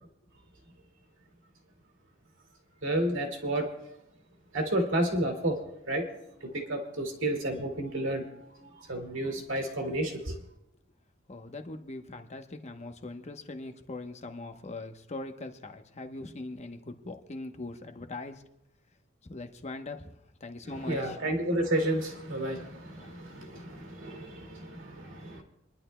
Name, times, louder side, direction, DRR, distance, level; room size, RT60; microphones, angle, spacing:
voice 1, 2.8-3.7 4.5-5.6 5.9-6.1 6.4-10.4 20.8-25.4, right 1 dB, 65° right, 3 dB, 2.2 m, -31 dB
voice 2, 11.3-18.4 19.2-21.2 23.0-23.1, left 2 dB, 35° left, 6 dB, 0.9 m, -41 dB
28.0 x 11.0 x 2.2 m, 0.85 s
head